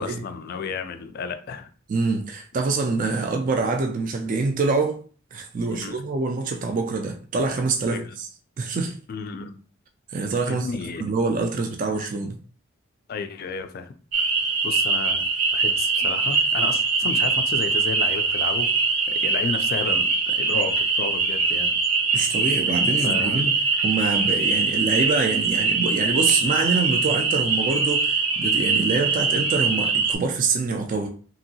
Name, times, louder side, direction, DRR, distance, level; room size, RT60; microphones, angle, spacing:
voice 1, 0.0-1.7 5.7-6.0 7.9-8.0 9.1-9.6 10.5-11.0 13.1-13.9 14.6-18.7 19.1-21.8 23.0-23.4, left 5 dB, 45° left, 0.3 m, -32 dB
voice 2, 1.9-5.0 5.3-8.3 8.6-9.0 10.1-10.7 11.0-12.4 22.1-23.5 23.8-31.1, right 4 dB, 40° right, 0.3 m, -25 dB
sound 1, 14.1-30.1, right 4 dB, 80° right, 0.7 m, -22 dB
2.9 x 2.7 x 2.7 m
head